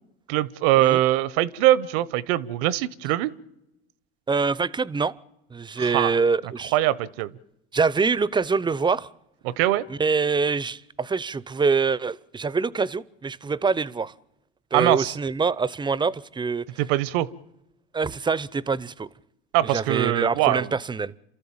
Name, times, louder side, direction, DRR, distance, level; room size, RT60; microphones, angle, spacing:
voice 1, 0.3-3.3 5.8-6.2 6.7-7.3 9.4-9.8 14.7-15.1 16.8-17.3 19.5-20.7, right 14 dB, 65° right, 1.0 m, -22 dB
voice 2, 4.3-5.1 5.5-6.7 7.7-9.1 9.9-14.1 14.7-16.7 17.9-19.1 19.6-21.1, right 4 dB, 15° right, 0.7 m, -25 dB
28.0 x 13.5 x 8.7 m
hypercardioid pair, 85°, 30 cm